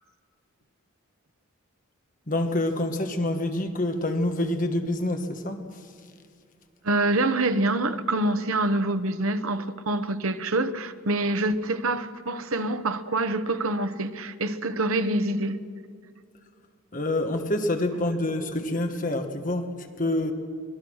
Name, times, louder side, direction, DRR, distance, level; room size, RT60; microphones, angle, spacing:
voice 1, 2.3-5.7 16.9-20.3, left 1 dB, 35° left, 1.4 m, -27 dB
voice 2, 6.8-15.6, right 2 dB, 75° right, 1.0 m, -26 dB
24.5 x 20.0 x 6.4 m
head